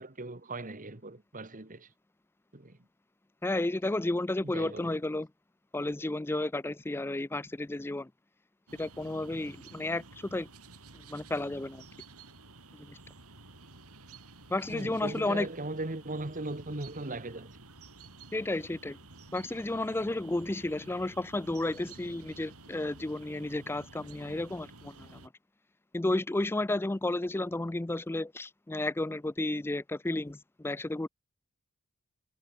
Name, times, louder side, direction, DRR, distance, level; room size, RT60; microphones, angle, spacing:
voice 1, 0.0-1.9 2.5-2.8 4.4-5.0 14.7-17.6, right 2 dB, 35° right, 1.7 m, -39 dB
voice 2, 3.4-5.3 5.7-8.1 8.8-10.5 10.9-11.9 12.8-13.0 14.5-15.5 18.3-19.0 19.3-25.3 25.9-31.1, left 2 dB, 10° left, 0.4 m, -32 dB
sound 1, 8.7-25.3, right 3 dB, 80° right, 7.7 m, -52 dB
head